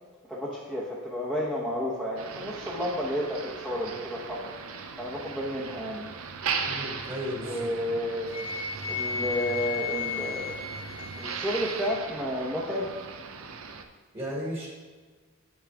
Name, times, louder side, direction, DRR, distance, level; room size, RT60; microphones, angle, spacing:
voice 1, 0.3-6.1 7.4-8.3 8.8-10.6 11.0-12.9, equal, 5° right, -8 dB, 1.0 m, -32 dB
Motor vehicle (road), 2.2-13.8, right 5 dB, 75° right, 0.6 m, -38 dB
voice 2, 6.7-7.7 14.1-14.7, equal, 25° right, -3 dB, 1.7 m, -34 dB
Wind instrument woodwind instrument, 8.3-12.0, left 6 dB, 30° left, 0.9 m, -34 dB
8.2 x 6.2 x 3.5 m, 1.5 s
head